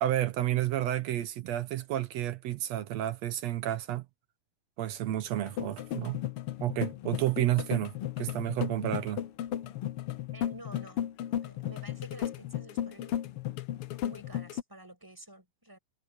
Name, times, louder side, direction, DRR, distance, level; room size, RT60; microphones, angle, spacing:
voice 1, 0.0-4.1 4.8-6.2 6.6-7.9 8.2-9.2, right 13 dB, 65° right, 1.9 m, -30 dB
sound 1, 5.4-14.6, left 11 dB, 80° left, 1.3 m, -35 dB
voice 2, 10.3-11.0 11.3-13.2 14.0-15.8, right 1 dB, 5° right, 6.1 m, -50 dB
omnidirectional pair, 3.7 m